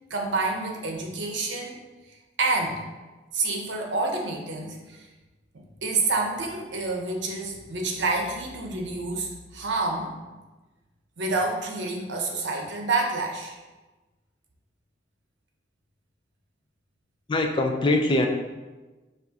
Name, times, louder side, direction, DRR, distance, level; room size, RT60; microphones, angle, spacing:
voice 1, 0.1-1.8 2.4-2.8 3.3-5.1 5.5-10.1 11.2-13.6, right 3 dB, 80° right, 1 dB, 0.7 m, -28 dB
voice 2, 17.3-18.3, left 2 dB, 25° left, 4 dB, 0.3 m, -22 dB
5.8 x 2.5 x 2.8 m, 1.2 s
head